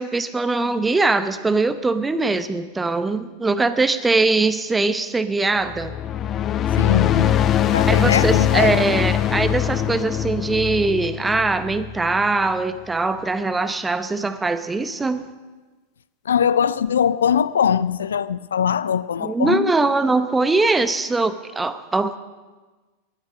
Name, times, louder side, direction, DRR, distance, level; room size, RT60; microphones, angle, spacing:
voice 1, 0.0-5.9 7.9-15.2 19.2-22.2, right 3 dB, 10° right, 0.8 m, -21 dB
sound 1, 5.7-12.3, left 10 dB, 30° left, 0.6 m, -22 dB
voice 2, 6.8-8.8 16.3-19.7, left 8 dB, 65° left, 0.3 m, -21 dB
19.0 x 10.5 x 5.2 m
figure-of-eight pair, 90°, 0 cm